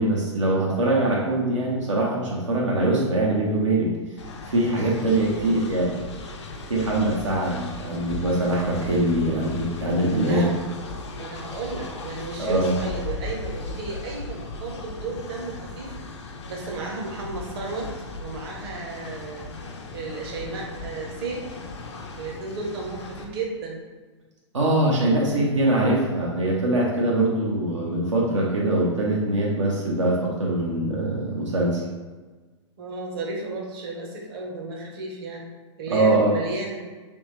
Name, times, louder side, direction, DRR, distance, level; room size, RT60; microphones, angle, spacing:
voice 1, 0.0-3.9 4.5-5.9 6.7-10.4 12.4-12.7 24.5-31.8 35.9-36.3, right 1 dB, 80° right, -4 dB, 0.8 m, -23 dB
Train, 4.2-23.2, left 2 dB, 65° left, 0.6 m, -37 dB
voice 2, 5.1-5.5 10.1-10.5 11.1-15.9 16.5-17.9 18.2-19.5 19.9-21.4 22.2-23.8 32.8-35.4 35.8-36.8, right 3 dB, 50° right, -1 dB, 1.0 m, -33 dB
3.5 x 3.1 x 3.1 m, 1.3 s
figure-of-eight pair, 110°, 16 cm